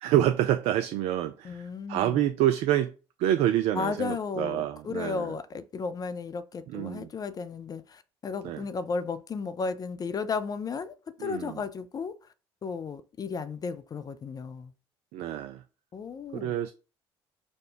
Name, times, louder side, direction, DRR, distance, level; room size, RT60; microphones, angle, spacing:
voice 1, 0.0-1.6 1.9-2.9 3.2-5.2 6.7-7.1 8.4-8.6 11.2-11.5 15.1-15.6 16.3-16.7, right 12 dB, 55° right, 0.4 m, -27 dB
voice 2, 1.4-2.3 3.7-12.3 12.6-14.7 15.9-16.6, left 5 dB, 30° left, 0.4 m, -34 dB
4.9 x 2.2 x 3.8 m
figure-of-eight pair, 50°, 13 cm